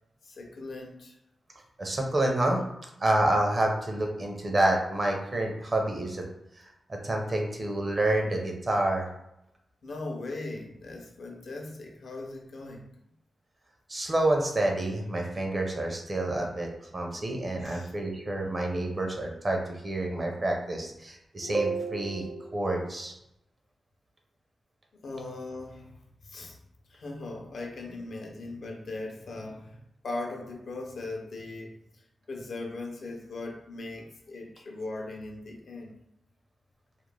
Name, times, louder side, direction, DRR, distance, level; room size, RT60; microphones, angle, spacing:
voice 1, 0.2-1.2 9.8-12.9 17.6-17.9 25.0-26.0 26.2-26.6 26.9-29.8 30.0-32.0 32.3-35.9, left 2 dB, 65° left, 1 dB, 0.5 m, -39 dB
voice 2, 1.8-2.6 3.0-6.2 6.9-9.1 13.9-23.1, right 1 dB, 30° right, 1 dB, 0.5 m, -28 dB
2.4 x 2.1 x 3.1 m, 0.84 s
wide cardioid pair, 100°, 0 cm